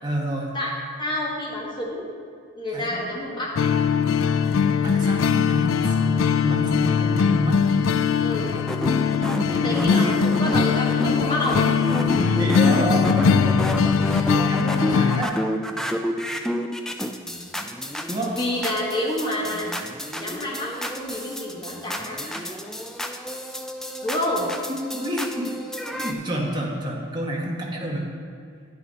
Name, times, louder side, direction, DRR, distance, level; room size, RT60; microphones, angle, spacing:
voice 1, 0.0-0.5 2.7-2.9 4.8-7.6 9.6-10.3 12.1-13.7 14.4-15.4 18.1-18.3 22.3-22.4 24.7-25.5 25.9-28.1, right 1 dB, 20° right, -3 dB, 1.4 m, -29 dB
voice 2, 1.0-2.1 2.6-3.5 8.2-8.5 9.5-11.6 18.3-19.7 20.1-22.2 24.0-24.5, left 1 dB, 20° left, -3 dB, 1.4 m, -28 dB
sound 1, 3.6-15.2, left 6 dB, 70° left, 0.4 m, -21 dB
sound 2, 8.4-26.1, equal, ahead, 0.4 m, -30 dB
9.5 x 9.1 x 4.1 m, 2.3 s
head